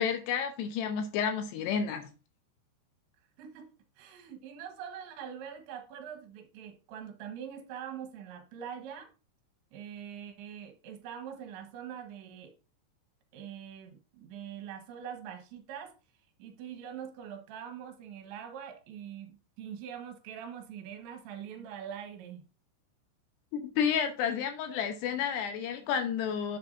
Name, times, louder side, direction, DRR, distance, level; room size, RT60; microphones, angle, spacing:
voice 1, 0.0-2.1 23.5-26.6, left 7 dB, 75° left, 2.8 m, -31 dB
voice 2, 3.4-9.1 9.7-12.6 13.3-15.9 16.4-22.4, right 8 dB, 75° right, 3.6 m, -43 dB
10.5 x 7.5 x 2.6 m
omnidirectional pair, 5.4 m